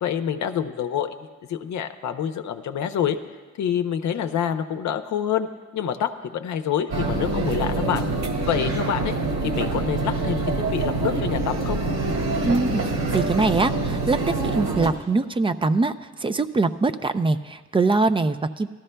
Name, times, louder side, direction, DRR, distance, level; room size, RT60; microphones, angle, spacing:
voice 1, 0.0-1.1 1.5-3.2 3.6-5.5 5.7-8.1 8.4-9.2 9.4-11.8, left 9 dB, 65° left, 8 dB, 0.7 m, -26 dB
sound 1, 6.9-14.9, right 3 dB, 65° right, 2.0 m, -25 dB
voice 2, 12.4-12.8 13.1-14.2 14.5-18.7, right 3 dB, 20° right, 11 dB, 0.4 m, -22 dB
18.0 x 13.5 x 2.2 m, 1.4 s
cardioid pair, 90°, 30 cm